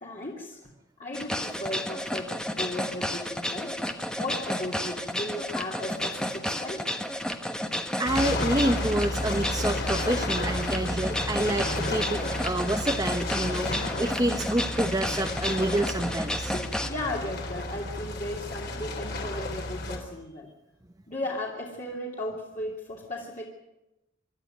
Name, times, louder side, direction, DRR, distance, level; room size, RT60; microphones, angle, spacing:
voice 1, 0.0-0.7 1.0-6.9 16.5-20.5 21.1-23.5, left 1 dB, 35° left, -4 dB, 2.8 m, -36 dB
sound 1, 1.1-16.9, equal, 5° left, 1.3 m, -32 dB
sound 2, 8.0-20.0, left 1 dB, 55° left, 3.8 m, -32 dB
voice 2, 8.0-16.6, right 1 dB, 20° right, 4 dB, 1.0 m, -28 dB
26.0 x 13.0 x 9.4 m, 0.96 s
head